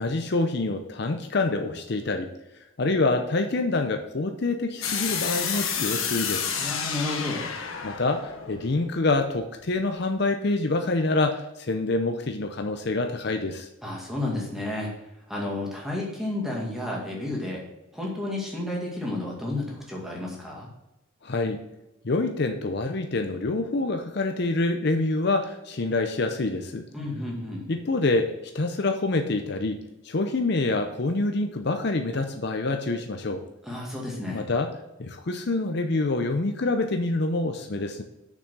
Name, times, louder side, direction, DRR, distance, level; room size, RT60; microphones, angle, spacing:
voice 1, 0.0-2.3 2.8-6.5 7.8-13.7 21.2-21.6 22.0-26.9 27.7-33.4 34.3-38.0, left 2 dB, 55° left, 6 dB, 0.6 m, -26 dB
sound 1, 4.8-9.7, left 7 dB, 80° left, 1.1 m, -30 dB
voice 2, 6.6-7.5 13.8-14.9 15.3-17.6 17.9-20.7 26.9-27.7 33.6-34.4, left 2 dB, ahead, -3 dB, 2.0 m, -31 dB
6.8 x 6.1 x 6.2 m, 0.94 s
head